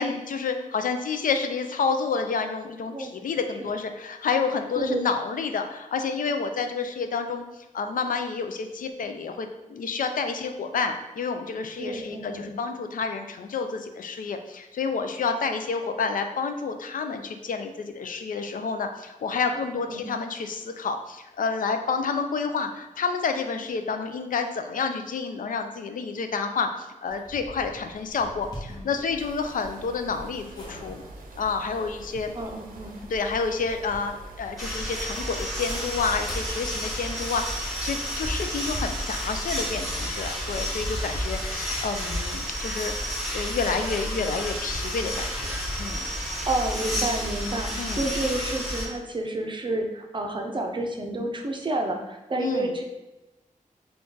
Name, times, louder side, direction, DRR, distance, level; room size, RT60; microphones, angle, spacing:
voice 1, 0.0-7.4 7.7-31.0 31.4-32.3 33.1-46.0 47.8-48.1 52.4-52.7, left 5 dB, 75° left, 6 dB, 0.4 m, -29 dB
voice 2, 11.8-12.5 19.5-20.1 32.3-32.9 46.4-52.8, right 2 dB, 35° right, 3 dB, 0.5 m, -30 dB
sound 1, 27.1-45.4, equal, 30° left, 1.2 m, -46 dB
sound 2, 29.2-46.4, right 2 dB, 90° right, 0.6 m, -46 dB
sound 3, 34.6-48.9, equal, ahead, 1.0 m, -31 dB
3.7 x 2.3 x 3.8 m, 1.0 s
wide cardioid pair, 85°, 14 cm